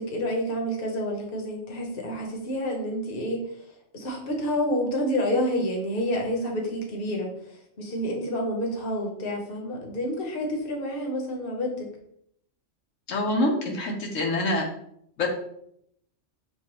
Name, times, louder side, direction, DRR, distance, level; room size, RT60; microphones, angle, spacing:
voice 1, 0.0-3.4 3.9-7.3 7.8-11.9, equal, 50° left, 1 dB, 1.0 m, -28 dB
voice 2, 13.1-14.7 15.2-15.3, left 1 dB, 85° left, 0 dB, 1.2 m, -25 dB
6.6 x 2.3 x 2.9 m, 0.72 s
omnidirectional pair, 1.3 m